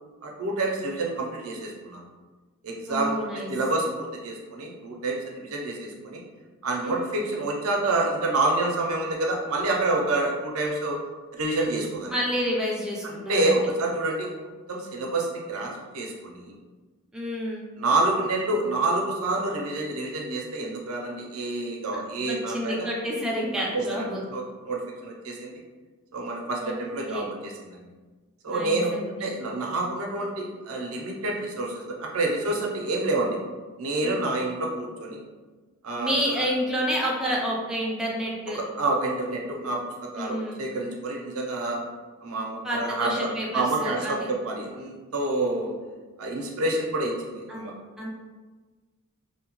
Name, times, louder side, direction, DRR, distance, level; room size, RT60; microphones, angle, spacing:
voice 1, 0.2-2.0 2.6-3.1 3.5-6.2 6.6-11.0 11.3-12.1 13.0-14.3 14.7-16.5 17.8-22.9 23.7-24.0 24.3-25.5 26.1-27.8 28.4-28.9 29.2-33.4 33.8-35.2 35.8-36.5 38.5-39.8 40.1-41.8 42.2-43.1 43.5-45.7 46.2-47.7, right 2 dB, 75° right, -1 dB, 0.5 m, -28 dB
voice 2, 2.9-3.5 6.8-7.0 12.1-13.7 17.1-17.7 21.9-22.0 22.3-24.2 26.6-26.7 27.1-27.3 28.5-29.3 34.0-34.2 36.0-38.6 40.2-40.6 42.6-44.3 47.5-47.7 48.0-48.1, equal, 5° right, -4 dB, 0.4 m, -29 dB
2.7 x 2.1 x 2.9 m, 1.3 s
head